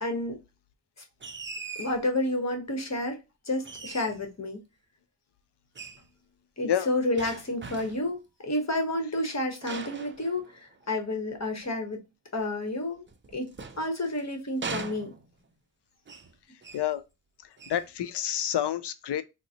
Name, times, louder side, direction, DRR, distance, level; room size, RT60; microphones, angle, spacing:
voice 1, 0.0-0.4 1.8-3.2 3.5-4.6 6.6-12.0 12.3-13.0 13.3-13.5 13.8-15.1, left 1 dB, 40° left, 1.0 m, -30 dB
sound 1, 1.2-2.0 3.6-4.3 5.7-6.1 7.2-8.1 9.6-10.9 13.1-14.2 14.6-15.5 16.1-16.3 16.6-16.9 17.6-17.9, right 4 dB, 25° right, 0.6 m, -40 dB
voice 2, 17.7-19.2, left 10 dB, 70° left, 0.5 m, -28 dB
3.7 x 2.0 x 2.7 m
cardioid pair, 50°, 43 cm